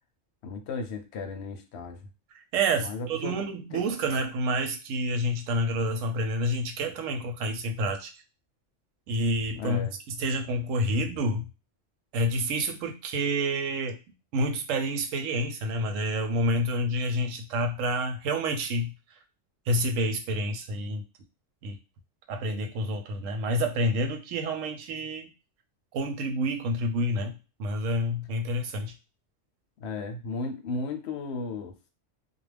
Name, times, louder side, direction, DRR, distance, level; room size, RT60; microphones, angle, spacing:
voice 1, 0.4-2.0 2.8-3.4 3.7-3.8 9.6-9.9 29.8-31.7, left 3 dB, 65° left, 6 dB, 0.8 m, -35 dB
voice 2, 2.3-8.1 9.1-9.9 10.2-11.5 12.1-14.0 14.3-18.9 19.7-21.0 21.6-21.8 22.3-25.3 25.9-28.9, equal, 85° right, 5 dB, 1.0 m, -28 dB
2.3 x 2.0 x 3.3 m, 0.30 s
omnidirectional pair, 1.3 m